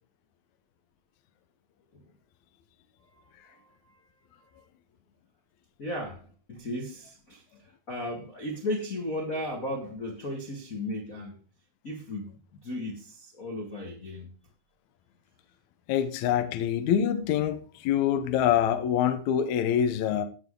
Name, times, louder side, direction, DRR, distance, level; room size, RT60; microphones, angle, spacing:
voice 1, 3.4-4.0 4.4-4.6 5.8-7.4 7.9-11.4 11.8-14.3 20.1-20.2, left 1 dB, 60° left, 0.9 m, -36 dB
voice 2, 15.9-20.2, left 9 dB, 75° left, 1.8 m, -25 dB
16.5 x 6.1 x 3.7 m
omnidirectional pair, 4.2 m